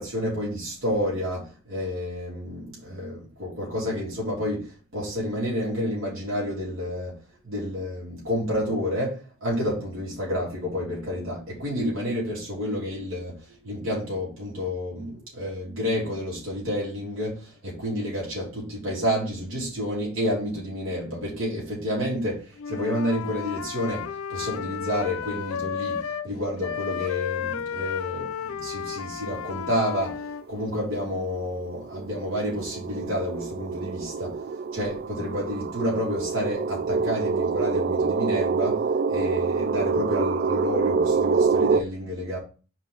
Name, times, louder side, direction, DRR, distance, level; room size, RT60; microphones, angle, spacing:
voice 1, 0.0-7.2 7.4-30.2 30.5-34.4 34.7-38.8 39.1-42.4, equal, 75° right, 3.1 m, -30 dB
Wind instrument woodwind instrument, 22.6-26.3 26.6-30.4, left 7 dB, 90° left, 0.4 m, -33 dB
sound 1, 30.4-30.5 31.0-41.8, right 5 dB, 45° right, 0.3 m, -26 dB
5.0 x 3.8 x 5.1 m
head